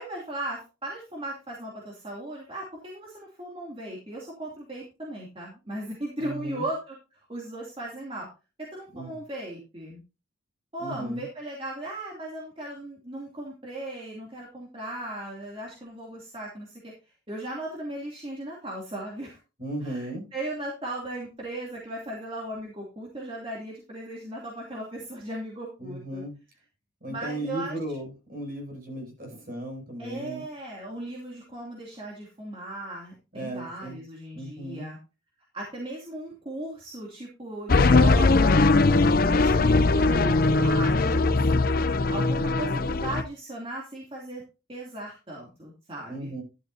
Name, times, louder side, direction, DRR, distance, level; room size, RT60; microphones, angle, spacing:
voice 1, 0.0-8.3 8.6-10.0 10.7-16.9 17.3-19.4 19.8-26.2 27.1-27.8 30.0-35.0 35.5-41.4 42.1-44.4 44.7-46.3, right 1 dB, 30° right, -3 dB, 2.7 m, -37 dB
voice 2, 6.2-6.6 8.9-9.1 10.8-11.3 19.6-20.3 25.8-26.4 27.0-30.4 33.3-34.0 34.3-34.9 46.1-46.4, right 1 dB, 50° right, 0 dB, 6.9 m, -36 dB
sound 1, 37.7-43.2, left 3 dB, 50° left, 0.6 m, -20 dB
12.0 x 11.5 x 2.7 m, 0.31 s
head